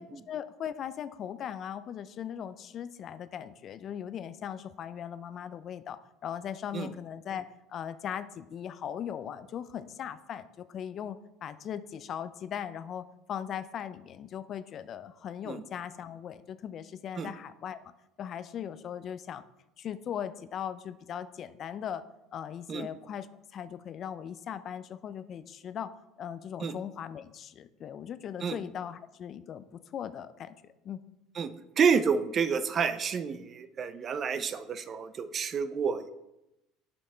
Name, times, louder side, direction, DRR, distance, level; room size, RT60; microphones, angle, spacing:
voice 1, 0.0-17.8 18.2-19.4 19.8-22.0 22.3-23.3 23.5-25.9 26.2-30.5 30.8-31.0, left 9 dB, 45° left, 14 dB, 0.4 m, -39 dB
voice 2, 31.8-36.1, right 6 dB, 40° right, 12 dB, 0.5 m, -29 dB
6.9 x 5.3 x 4.4 m, 0.91 s
supercardioid pair, 100°, 0 cm